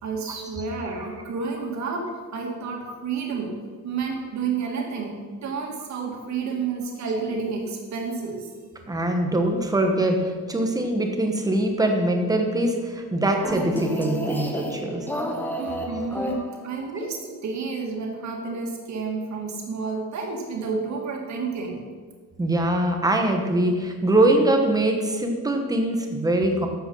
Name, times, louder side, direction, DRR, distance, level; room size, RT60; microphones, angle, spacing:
voice 1, 0.0-3.6 3.8-8.5 15.6-21.8, right 4 dB, 55° right, 1 dB, 2.4 m, -30 dB
voice 2, 8.9-15.1 22.4-26.7, right 1 dB, 10° right, 3 dB, 1.3 m, -23 dB
sound 1, 13.4-16.9, left 1 dB, 5° left, 1.0 m, -31 dB
12.5 x 8.1 x 5.6 m, 1.5 s
cardioid pair, 175°, 34 cm